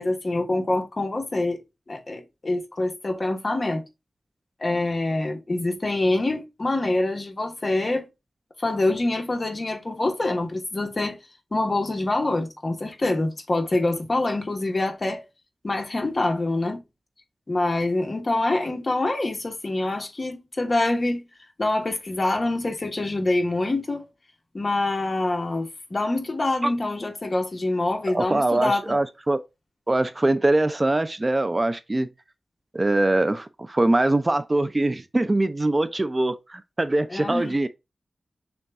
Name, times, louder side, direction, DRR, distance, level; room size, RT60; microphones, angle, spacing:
voice 1, 0.0-1.6 1.9-3.8 4.6-8.1 8.6-11.2 11.5-15.2 15.6-16.8 17.5-21.2 21.6-24.1 24.5-29.0 37.1-37.6, left 2 dB, 40° left, 1.1 m, -25 dB
voice 2, 28.1-29.4 29.9-32.1 32.7-37.7, right 2 dB, 30° right, 0.4 m, -23 dB
6.6 x 2.3 x 3.5 m
wide cardioid pair, 75°, 0 cm